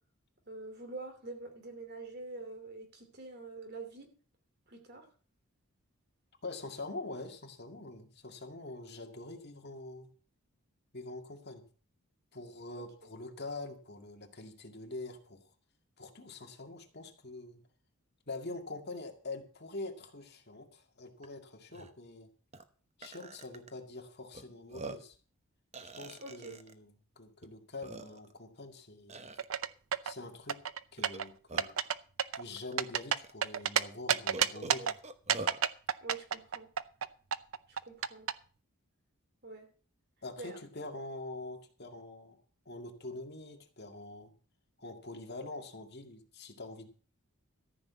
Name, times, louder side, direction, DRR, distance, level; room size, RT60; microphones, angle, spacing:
voice 1, 0.5-4.1 4.7-5.0 26.2-26.5 36.0-36.7 37.7-38.3 39.4-39.7 40.4-40.6, right 3 dB, 45° right, 5 dB, 2.8 m, -45 dB
voice 2, 6.4-10.1 10.9-11.6 12.3-15.5 16.0-17.6 18.3-22.3 23.0-25.2 25.8-29.3 30.0-30.6 30.9-31.8 32.3-34.9 40.2-42.4 42.7-44.3 44.8-46.9, left 2 dB, 45° left, 4 dB, 2.1 m, -45 dB
Burping eructation, 21.2-21.3 21.7-21.9 22.5-22.6 23.0-23.7 24.3-24.4 24.7-25.2 25.7-26.7 27.4-27.5 27.8-28.4 29.1-29.5 31.0-31.9 32.7-32.8 33.2-33.3 34.3-35.6, right 2 dB, 30° right, 0.9 m, -45 dB
sound 1, 29.4-30.1 30.5-31.3 31.6-31.9 32.2-33.8 34.1-34.9 35.3-37.1 37.3-38.3, right 8 dB, 65° right, 0.7 m, -29 dB
14.0 x 6.0 x 8.3 m, 0.39 s
head